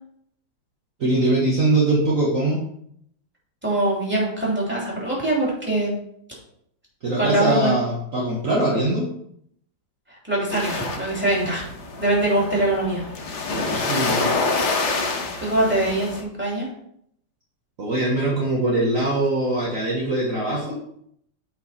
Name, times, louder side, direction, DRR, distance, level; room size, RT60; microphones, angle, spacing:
voice 1, 1.0-2.6 7.0-9.1 13.5-14.3 17.8-20.8, right 2 dB, 45° right, -4 dB, 1.6 m, -22 dB
voice 2, 3.6-5.9 7.2-7.8 10.1-11.7 12.0-13.0 15.4-16.7, right 1 dB, 5° right, -6 dB, 2.9 m, -23 dB
sound 1, 10.5-16.2, left 3 dB, 60° left, 1.6 m, -27 dB
8.3 x 4.6 x 4.2 m, 0.70 s
omnidirectional pair, 2.1 m